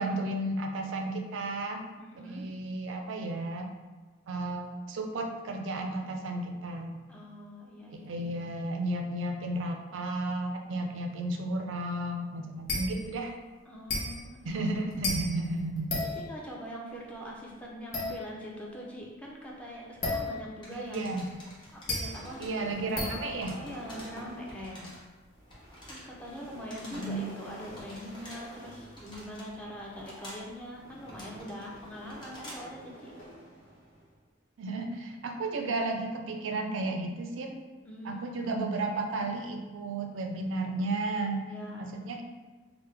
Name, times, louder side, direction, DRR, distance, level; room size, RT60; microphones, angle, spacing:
voice 1, 0.0-1.8 2.2-3.7 4.3-7.0 7.9-13.3 14.4-16.1 20.7-21.3 22.4-23.6 26.9-27.3 34.6-37.6 38.0-41.5 41.8-42.2, right 2 dB, 80° right, 4 dB, 0.4 m, -33 dB
voice 2, 2.0-2.5 7.1-8.3 13.7-14.6 16.0-21.1 21.7-22.4 23.6-25.0 25.8-33.1 37.8-38.3 41.5-41.9, equal, 5° left, -3 dB, 0.4 m, -43 dB
sound 1, 12.7-13.1 13.9-16.6 17.9-18.6 20.0-20.8 21.6-24.0, left 2 dB, 55° left, 0.8 m, -34 dB
sound 2, 20.6-32.8, equal, 25° left, 0.8 m, -50 dB
sound 3, 22.0-24.6 25.3-34.2, equal, 90° left, 0.9 m, -50 dB
3.2 x 2.0 x 3.2 m, 1.3 s
head